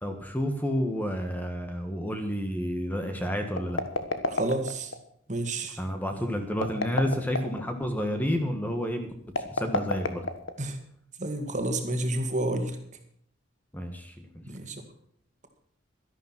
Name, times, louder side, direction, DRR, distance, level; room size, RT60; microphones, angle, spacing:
voice 1, 0.0-3.8 5.8-9.1 9.5-10.2 13.7-14.4, equal, 10° left, 5 dB, 1.5 m, -30 dB
sound 1, 3.5-5.0 6.5-7.6 9.3-10.8, left 3 dB, 80° left, 1.4 m, -30 dB
voice 2, 4.3-4.9 5.3-5.8 10.6-10.8 11.2-12.8 14.5-14.8, right 1 dB, 40° right, 5 dB, 2.0 m, -30 dB
12.5 x 11.5 x 6.0 m, 0.65 s
head